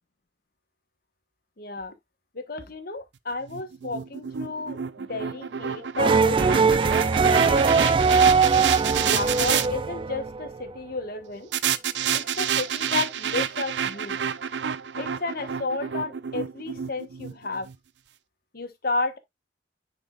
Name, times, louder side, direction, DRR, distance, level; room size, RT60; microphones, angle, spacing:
voice 1, 1.6-1.9 2.3-6.7 7.3-8.3 9.0-11.5 12.1-14.2 15.0-17.7 18.5-19.2, left 3 dB, 60° left, 1.3 m, -32 dB
sound 1, 3.5-9.7 11.5-17.8, right 8 dB, 85° right, 0.5 m, -29 dB
sound 2, 6.0-10.7, right 5 dB, 30° right, 0.4 m, -21 dB
9.7 x 4.5 x 2.4 m
head